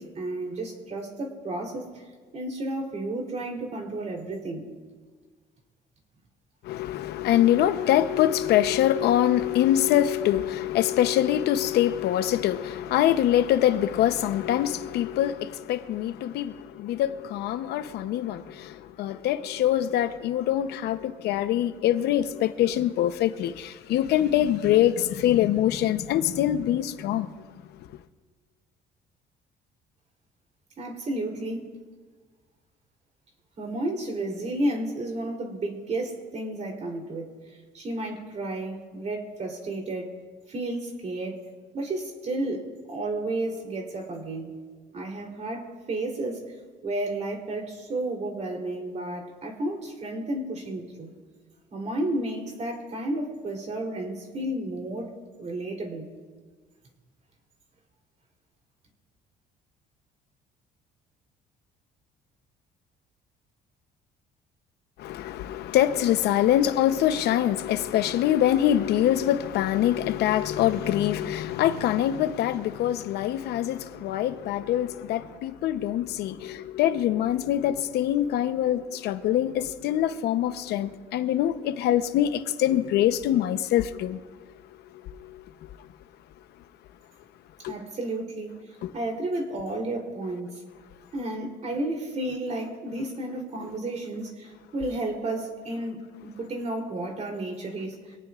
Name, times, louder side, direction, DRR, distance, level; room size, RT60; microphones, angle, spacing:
voice 1, 0.0-2.0 2.3-4.7 30.8-31.7 33.6-40.2 40.5-41.5 41.7-44.6 44.9-46.5 46.8-51.1 51.7-55.1 55.4-56.1 87.7-90.6 91.1-98.2, right 1 dB, 40° right, 3.5 m, -32 dB
voice 2, 6.6-27.3 65.0-84.2 85.0-85.4 87.6-87.7 88.8-88.9, left 12 dB, 75° left, 0.9 m, -24 dB
25.5 x 18.0 x 2.5 m
cardioid pair, 110°, 17 cm